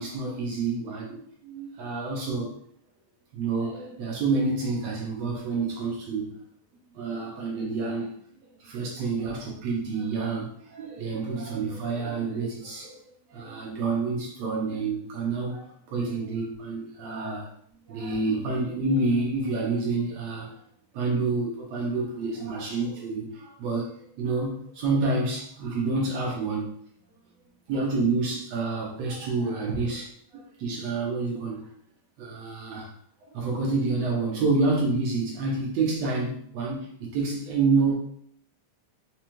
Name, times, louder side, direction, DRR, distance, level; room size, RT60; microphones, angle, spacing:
voice 1, 0.0-2.6 3.3-6.4 6.9-8.1 8.6-13.0 13.3-17.5 17.9-20.6 20.9-26.8 27.7-31.7 32.2-32.9 33.2-37.9, right 3 dB, 75° right, -3 dB, 1.7 m, -28 dB
5.1 x 2.3 x 2.9 m, 0.63 s
omnidirectional pair, 3.6 m